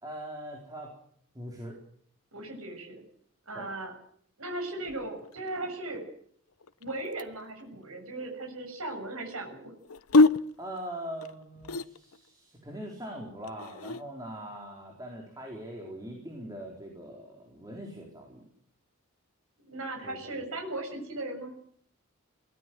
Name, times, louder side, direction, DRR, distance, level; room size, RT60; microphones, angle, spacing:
voice 1, 0.0-0.9 1.3-1.8 3.5-3.7 10.6-18.4 20.0-20.5, right 1 dB, 15° right, 0 dB, 4.4 m, -42 dB
voice 2, 2.3-3.0 3.5-3.9 4.4-6.1 6.8-9.7 19.7-21.5, right 2 dB, 85° right, 3 dB, 7.0 m, -37 dB
sound 1, 4.8-5.6 6.5-7.6 9.8-12.3 13.4-14.0, left 3 dB, 85° left, 0.9 m, -26 dB
23.0 x 18.0 x 7.9 m, 0.63 s
head